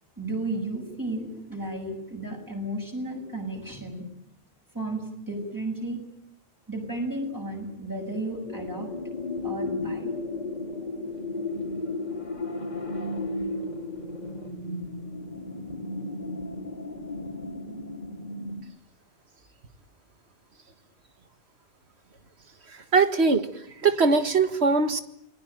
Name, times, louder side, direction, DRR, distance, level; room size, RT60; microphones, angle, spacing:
voice 1, 0.2-4.1 4.7-6.0 6.7-8.9 9.4-10.1, right 1 dB, 20° right, 1 dB, 7.5 m, -33 dB
sound 1, 8.5-18.6, left 2 dB, 40° left, 3.0 m, -34 dB
voice 2, 22.7-23.5 23.8-25.0, right 4 dB, 80° right, 10 dB, 2.0 m, -21 dB
28.0 x 20.5 x 9.1 m, 0.74 s
omnidirectional pair, 1.1 m